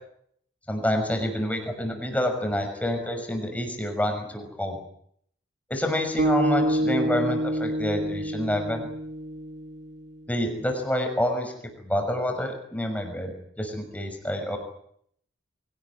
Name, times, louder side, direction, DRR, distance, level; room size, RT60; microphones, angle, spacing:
voice 1, 0.7-4.8 5.7-8.9 10.3-11.5 11.8-14.6, left 1 dB, 5° left, 4 dB, 6.2 m, -28 dB
sound 1, 6.2-10.6, equal, 60° right, 2.8 m, -27 dB
24.5 x 18.5 x 9.8 m, 0.68 s
head